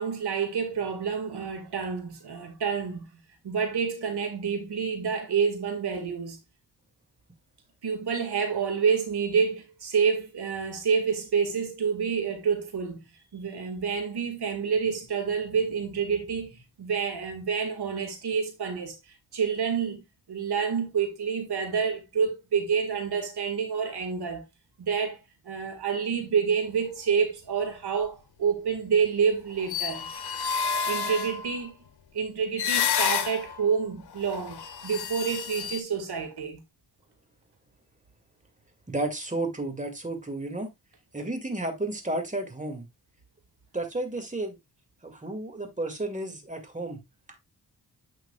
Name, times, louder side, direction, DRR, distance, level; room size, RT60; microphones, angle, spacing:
voice 1, 0.0-3.1 3.4-6.4 7.8-13.0 13.3-19.0 19.3-20.0 20.3-24.4 24.8-25.2 25.4-30.1 30.6-31.8 32.1-36.6, right 6 dB, 80° right, 2.0 m, -28 dB
sound 1, 29.5-31.6 32.6-33.6 34.1-35.8, left 7 dB, 85° left, 0.9 m, -30 dB
voice 2, 38.9-40.7 41.1-42.9 43.7-44.6 45.0-47.0 47.3-47.4, right 2 dB, 20° right, 2.2 m, -32 dB
8.5 x 6.0 x 2.3 m
cardioid pair, 65°, 39 cm